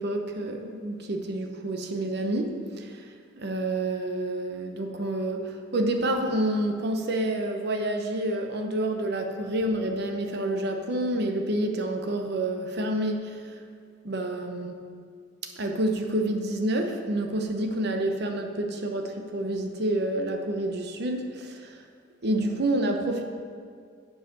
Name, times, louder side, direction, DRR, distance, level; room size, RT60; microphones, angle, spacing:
voice 1, 0.0-3.1 3.4-13.5 14.0-14.7 15.5-21.8 22.2-23.2, right 1 dB, 60° right, 4 dB, 0.8 m, -28 dB
8.1 x 4.8 x 6.6 m, 2.1 s
head